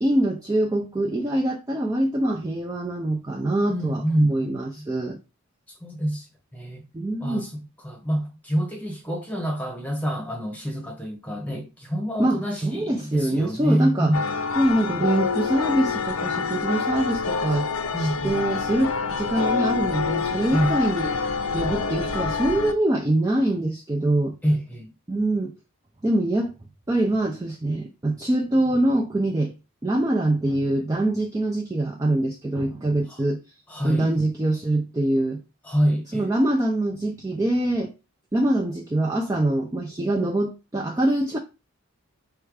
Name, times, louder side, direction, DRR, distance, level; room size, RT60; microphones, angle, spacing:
voice 1, 0.0-5.2 6.9-7.5 12.2-14.1 14.6-17.7 18.0-21.1 21.5-24.4 25.1-25.5 26.0-26.5 26.9-29.5 29.8-33.4 33.8-35.4 36.1-37.9 38.3-41.4, right 1 dB, 15° right, 0.3 m, -24 dB
voice 2, 3.7-4.8 5.7-6.3 6.5-6.8 7.2-14.2 17.9-18.4 20.5-20.8 24.4-24.9 33.1-33.2 33.7-34.2 35.6-36.3, equal, 5° left, 1.0 m, -27 dB
sound 1, 14.1-22.7, left 5 dB, 75° left, 0.6 m, -27 dB
4.4 x 2.3 x 4.7 m
head